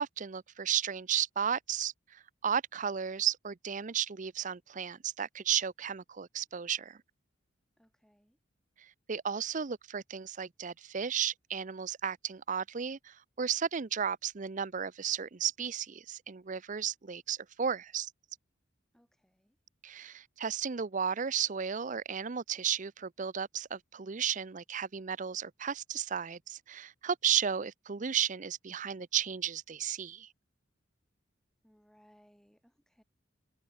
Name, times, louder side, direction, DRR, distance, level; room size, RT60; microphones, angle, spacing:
voice 1, 0.0-7.0 9.1-18.1 19.8-30.3, right 8 dB, 40° right, 0.6 m, -34 dB
voice 2, 7.8-8.4 18.9-19.6 31.6-33.0, equal, 5° left, 4.7 m, -65 dB
head